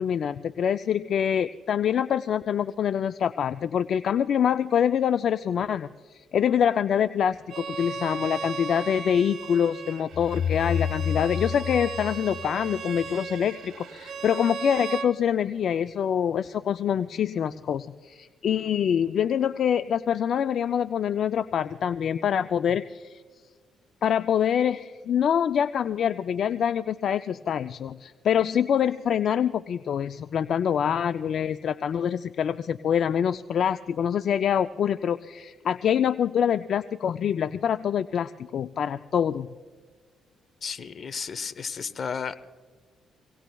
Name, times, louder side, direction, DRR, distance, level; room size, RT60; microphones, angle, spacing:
voice 1, 0.0-5.9 6.3-23.2 24.0-39.5, left 8 dB, 60° left, 11 dB, 0.3 m, -25 dB
Bowed string instrument, 7.5-15.1, right 5 dB, 65° right, 1.3 m, -36 dB
sound 1, 10.1-13.0, left 8 dB, 85° left, 1.2 m, -30 dB
voice 2, 40.6-42.3, left 6 dB, 45° left, 13 dB, 0.8 m, -33 dB
25.5 x 18.0 x 2.3 m, 1.5 s
cardioid pair, 90°, 0 cm